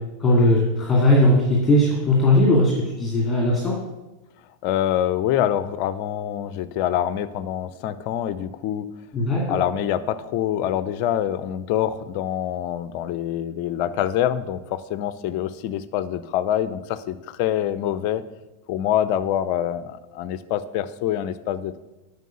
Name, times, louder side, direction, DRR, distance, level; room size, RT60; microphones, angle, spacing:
voice 1, 0.2-1.3 1.6-2.7 3.0-3.7 9.1-9.6, left 1 dB, 15° left, -3 dB, 2.3 m, -18 dB
voice 2, 4.6-8.9 9.5-18.2 18.7-21.8, left 11 dB, 45° left, 14 dB, 0.6 m, -25 dB
9.1 x 5.9 x 7.8 m, 1.0 s
figure-of-eight pair, 90°, 0 cm